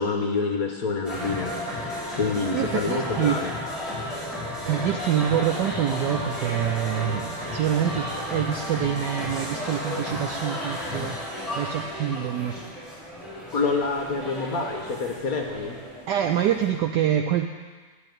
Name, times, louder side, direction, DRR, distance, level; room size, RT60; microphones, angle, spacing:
voice 1, 0.0-3.5 13.5-15.8, left 4 dB, 55° left, 2 dB, 1.1 m, -27 dB
sound 1, 1.0-16.6, left 1 dB, ahead, 3.0 m, -33 dB
voice 2, 2.5-3.4 4.7-12.7 16.1-17.5, right 10 dB, 80° right, 6 dB, 0.9 m, -26 dB
9.9 x 6.6 x 9.1 m, 1.4 s
omnidirectional pair, 2.3 m